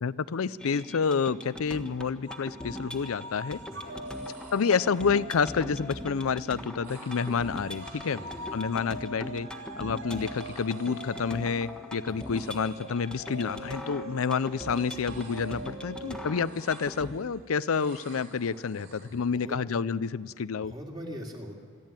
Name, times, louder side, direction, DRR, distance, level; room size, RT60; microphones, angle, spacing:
voice 1, 0.0-3.6 4.5-8.2 8.5-9.5 9.8-20.7, left 5 dB, 90° left, 16 dB, 0.5 m, -29 dB
sound 1, 0.6-17.1, left 1 dB, 5° left, 1.2 m, -42 dB
sound 2, 2.3-6.2 7.2-18.5, right 1 dB, 80° right, 2.7 m, -44 dB
voice 2, 3.7-4.0 8.1-8.6 12.0-12.2 16.0-16.3 19.1-19.6 20.6-21.6, equal, 20° right, 0 dB, 2.8 m, -43 dB
sound 3, 4.1-5.3 6.8-9.0 10.2-11.9 12.1-12.9 13.2-14.0 14.4-16.1 16.3-17.4 17.7-19.3, right 3 dB, 45° right, 4.5 m, -53 dB
26.0 x 12.0 x 9.0 m, 2.1 s
head